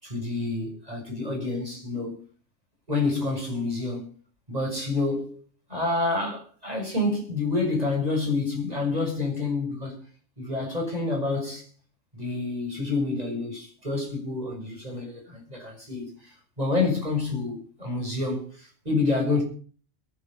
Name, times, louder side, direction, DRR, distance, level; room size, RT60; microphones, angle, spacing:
voice 1, 0.0-2.2 2.9-4.1 4.5-5.4 5.7-10.0 10.4-11.6 12.1-19.4, left 3 dB, 30° right, 6.9 m, -28 dB
22.0 x 8.4 x 5.4 m
omnidirectional pair, 1.2 m